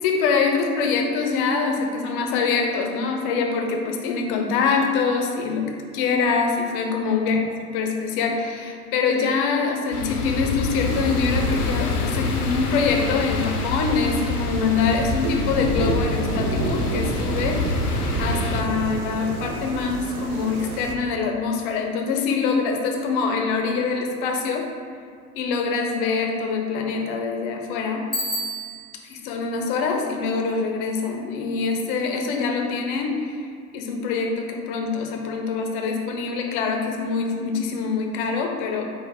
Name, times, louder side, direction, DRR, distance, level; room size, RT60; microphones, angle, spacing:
voice 1, 0.0-7.4 7.7-24.7 25.4-28.1 29.1-33.4 33.7-38.8, left 5 dB, 35° left, 2 dB, 0.5 m, -24 dB
sound 1, 9.9-18.6, left 3 dB, 80° left, 0.5 m, -27 dB
sound 2, 10.8-20.9, right 2 dB, 70° right, 0.6 m, -30 dB
Bicycle bell, 28.1-29.1, equal, 10° right, 1.0 m, -29 dB
5.1 x 2.1 x 3.4 m, 2.1 s
figure-of-eight pair, 85°, 46 cm